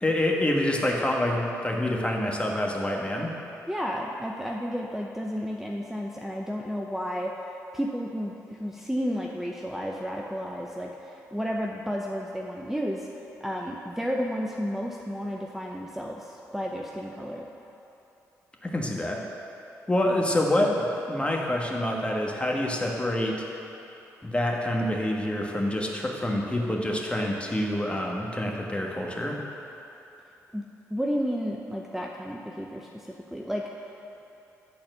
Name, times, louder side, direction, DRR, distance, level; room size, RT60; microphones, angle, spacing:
voice 1, 0.0-3.3 18.6-19.2 19.9-23.4 24.2-29.4, left 1 dB, 15° left, -1 dB, 1.4 m, -27 dB
voice 2, 3.7-7.3 7.7-13.1 13.4-17.5 30.5-30.6 30.9-33.7, equal, 5° right, 0 dB, 0.6 m, -32 dB
8.8 x 4.2 x 6.4 m, 2.9 s
hypercardioid pair, 40°, 8 cm